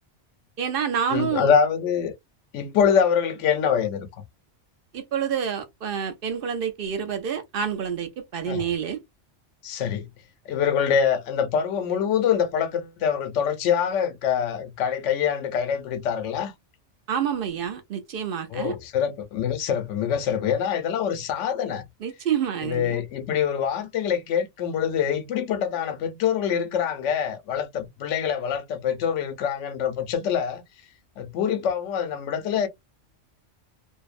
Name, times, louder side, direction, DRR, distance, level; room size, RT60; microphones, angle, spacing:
voice 1, 0.6-1.5 4.9-9.0 17.1-18.8 22.0-23.0, right 8 dB, 55° right, 0.7 m, -28 dB
voice 2, 1.1-2.1 2.5-4.1 8.5-8.6 9.6-10.1 10.5-16.5 18.5-21.8 22.6-30.6 31.2-32.7, left 8 dB, 75° left, 0.9 m, -25 dB
2.6 x 2.1 x 2.3 m
omnidirectional pair, 1.3 m